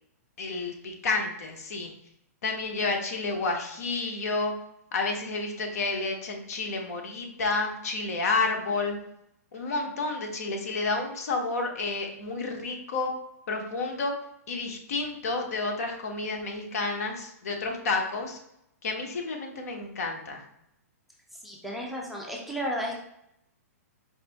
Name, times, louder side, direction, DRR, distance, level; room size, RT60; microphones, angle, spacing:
voice 1, 0.4-1.9 2.4-4.5 4.9-9.0 9.5-13.1 13.5-14.1 14.5-18.4 18.8-20.4, left 3 dB, 70° left, 3 dB, 0.9 m, -30 dB
voice 2, 21.4-23.0, equal, ahead, -3 dB, 0.5 m, -33 dB
4.3 x 2.5 x 3.4 m, 0.78 s
hypercardioid pair, 150°, 9 cm